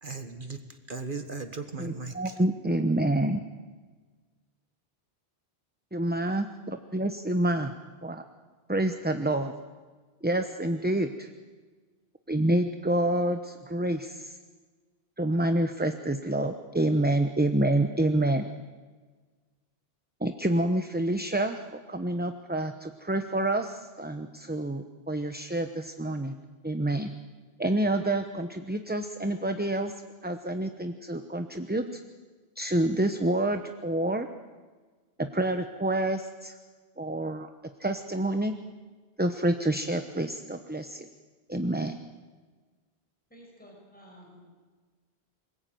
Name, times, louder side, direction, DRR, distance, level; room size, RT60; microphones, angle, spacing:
voice 1, 0.0-2.4, right 4 dB, 55° right, 8 dB, 1.6 m, -37 dB
voice 2, 1.8-3.4 5.9-7.7 8.0-8.2 8.7-9.5 10.2-11.3 12.3-14.4 15.2-18.5 20.2-21.6 21.9-26.3 26.6-27.1 27.6-29.9 30.2-32.0 32.6-34.3 35.2-36.6 37.0-37.5 37.8-38.6 39.2-41.1 41.5-42.0, right 1 dB, 10° right, 7 dB, 0.9 m, -28 dB
voice 3, 43.3-44.6, equal, 10° left, -2 dB, 6.4 m, -52 dB
27.5 x 20.0 x 9.3 m, 1.4 s
omnidirectional pair, 1.1 m